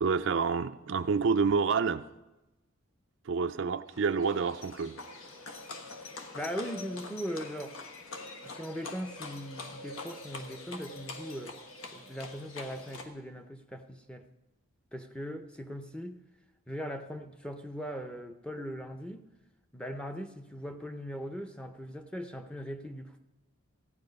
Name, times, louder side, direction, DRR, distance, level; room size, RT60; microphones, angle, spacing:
voice 1, 0.0-2.1 3.3-5.0, right 5 dB, 60° right, 11 dB, 0.4 m, -28 dB
Livestock farm animals working animals, 3.9-13.1, left 3 dB, 75° left, 1.2 m, -44 dB
voice 2, 6.3-7.8 8.4-11.6 11.9-14.3 14.9-16.2 16.7-19.2 19.7-23.2, equal, 5° left, 6 dB, 0.6 m, -39 dB
14.5 x 9.2 x 5.3 m, 1.0 s
head